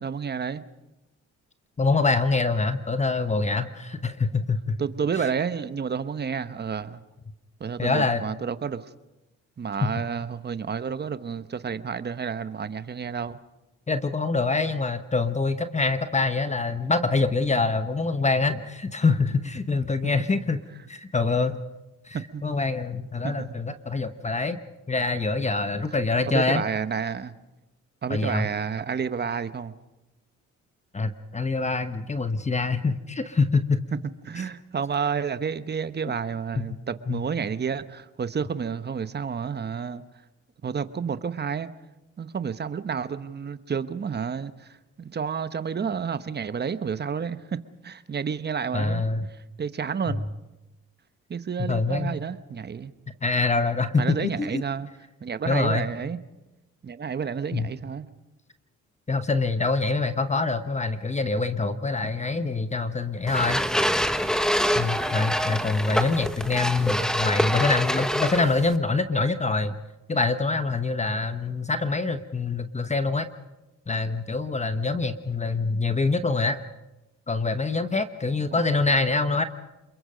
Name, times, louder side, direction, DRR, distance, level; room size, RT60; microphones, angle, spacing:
voice 1, 0.0-0.6 4.8-7.0 7.6-8.9 9.6-13.4 22.1-22.4 23.2-23.8 26.3-27.3 28.0-29.7 34.2-40.0 40.6-41.7 42.2-49.0 49.3-50.3 51.3-52.9 53.9-54.9 55.2-56.2 56.8-58.1 78.5-78.7, right 6 dB, 35° right, 1.1 m, -30 dB
voice 2, 1.8-4.7 7.8-8.2 9.8-9.9 13.9-20.6 20.9-21.6 22.0-24.6 24.9-26.6 28.1-28.5 30.9-33.8 36.6-36.7 37.1-37.2 48.7-49.3 51.6-52.2 53.2-54.6 55.5-55.9 57.5-57.7 59.1-63.6 64.8-69.8 70.1-73.3 73.9-76.6 77.3-79.4, left 3 dB, 25° left, 1.1 m, -25 dB
sound 1, 63.3-68.8, equal, ahead, 1.3 m, -25 dB
27.5 x 22.5 x 5.2 m
cardioid pair, 90°, 30 cm